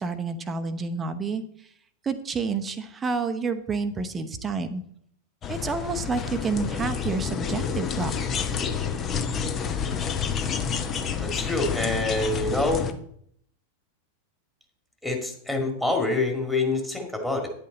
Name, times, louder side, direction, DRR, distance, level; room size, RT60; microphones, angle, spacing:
voice 1, 0.0-1.4 2.0-4.8 5.5-8.1 9.4-9.5, right 4 dB, 20° right, 8 dB, 0.8 m, -29 dB
sound 1, 5.4-12.9, left 6 dB, 25° left, 0.8 m, -29 dB
voice 2, 11.2-12.9 15.0-17.5, left 2 dB, 5° left, 1 dB, 2.0 m, -26 dB
9.9 x 8.4 x 3.9 m, 0.67 s
figure-of-eight pair, 90°, 0 cm